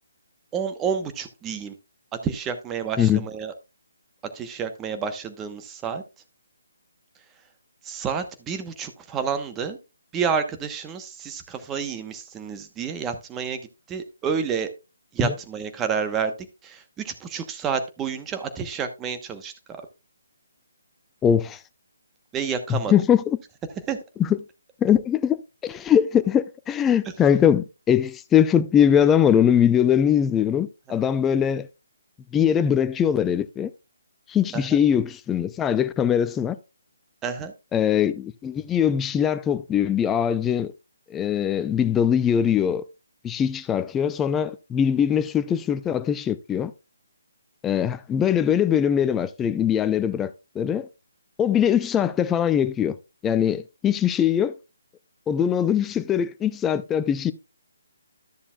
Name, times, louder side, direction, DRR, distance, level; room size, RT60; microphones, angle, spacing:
voice 1, 0.5-1.7 2.1-3.5 4.3-6.0 7.8-9.8 10.1-13.6 13.9-14.7 15.1-16.3 16.6-19.8 22.3-22.9 23.9-24.0 34.5-34.8 37.2-37.5, right 6 dB, 15° right, 1.1 m, -29 dB
voice 2, 21.2-21.6 22.7-23.4 24.2-24.4 24.8-31.7 32.3-33.7 34.3-36.6 37.7-40.7 41.1-42.8 43.2-46.7 47.6-50.9 51.4-52.9 53.2-54.5 55.3-57.3, left 9 dB, 10° left, 0.5 m, -21 dB
13.0 x 7.0 x 2.4 m
figure-of-eight pair, 150°, 0 cm